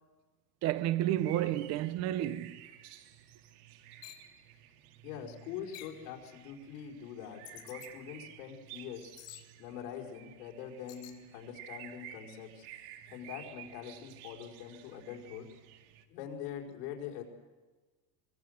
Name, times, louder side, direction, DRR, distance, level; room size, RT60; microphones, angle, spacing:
voice 1, 0.6-2.7, right 13 dB, 35° right, 0.7 m, -31 dB
sound 1, 1.2-16.0, right 11 dB, 65° right, 2.1 m, -53 dB
sound 2, 4.0-4.3 5.7-6.0 7.4-7.9 9.2-9.5 10.9-11.2, left 14 dB, 50° left, 2.9 m, -49 dB
voice 2, 5.0-9.1 9.6-12.7 13.1-15.5 16.1-17.2, left 8 dB, 75° left, 4.9 m, -44 dB
24.0 x 22.5 x 8.0 m
supercardioid pair, 165°, 48 cm